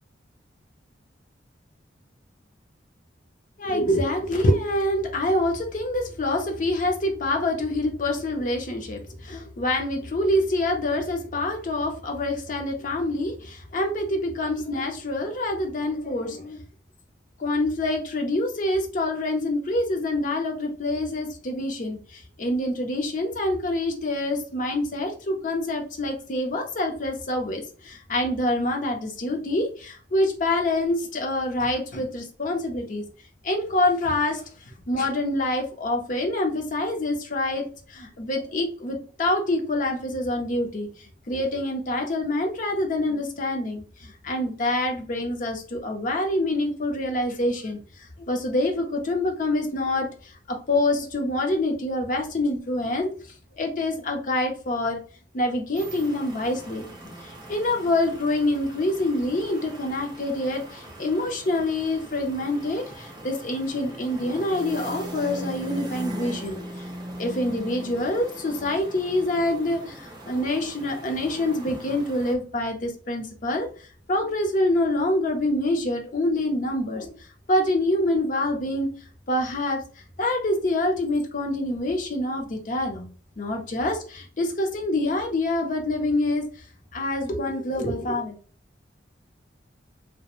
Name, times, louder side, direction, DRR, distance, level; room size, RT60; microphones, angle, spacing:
voice 1, 3.6-16.6 17.4-33.1 33.4-34.4 34.9-40.9 41.3-47.8 48.2-53.1 53.6-55.0 55.3-66.6 67.2-73.7 74.1-77.1 77.5-78.9 79.3-79.8 80.2-83.1 83.4-86.4 86.9-88.4, left 1 dB, 45° left, 3 dB, 0.6 m, -26 dB
sound 1, 55.8-72.3, right 1 dB, 25° right, 0.5 m, -40 dB
3.0 x 2.1 x 2.4 m, 0.41 s
head